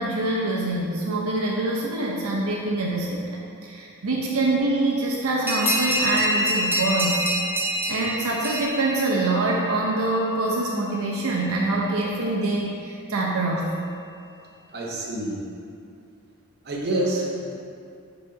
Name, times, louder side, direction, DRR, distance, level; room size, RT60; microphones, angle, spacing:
voice 1, 0.0-7.3 7.9-13.7, right 2 dB, 75° right, -3 dB, 0.7 m, -25 dB
sound 1, 5.5-9.7, right 1 dB, 10° right, 0.3 m, -28 dB
sound 2, 5.7-12.2, left 3 dB, 70° left, 0.8 m, -31 dB
voice 2, 14.7-15.5 16.6-17.5, right 1 dB, 45° right, -3 dB, 0.9 m, -27 dB
4.8 x 3.8 x 5.1 m, 2.5 s
head